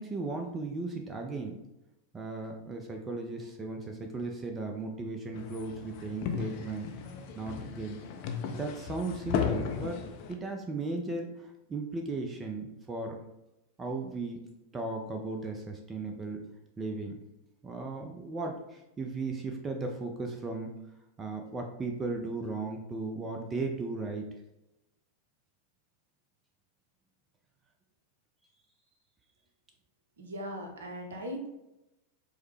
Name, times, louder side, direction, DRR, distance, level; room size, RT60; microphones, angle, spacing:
voice 1, 0.0-1.6 2.1-6.9 7.3-8.0 8.5-10.0 10.3-13.2 13.8-14.4 14.7-16.4 16.8-17.2 17.6-20.7 21.2-24.3, right 3 dB, 20° right, 3 dB, 0.5 m, -36 dB
sound 1, 5.3-10.3, left 6 dB, 45° left, 0.4 m, -35 dB
voice 2, 30.2-31.5, equal, 65° right, 2 dB, 0.7 m, -39 dB
4.7 x 2.1 x 3.2 m, 0.92 s
figure-of-eight pair, 90°, 0 cm